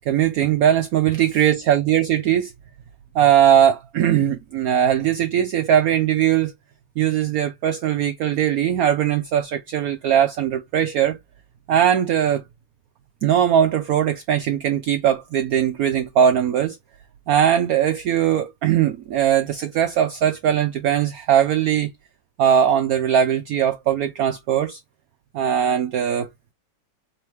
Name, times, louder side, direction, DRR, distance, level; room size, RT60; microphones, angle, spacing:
voice 1, 0.1-2.5 3.1-6.5 7.0-11.2 11.7-12.4 13.2-16.8 17.3-21.9 22.4-24.8 25.3-26.3, right 9 dB, 75° right, 0.8 m, -20 dB
4.6 x 3.0 x 3.1 m
omnidirectional pair, 2.0 m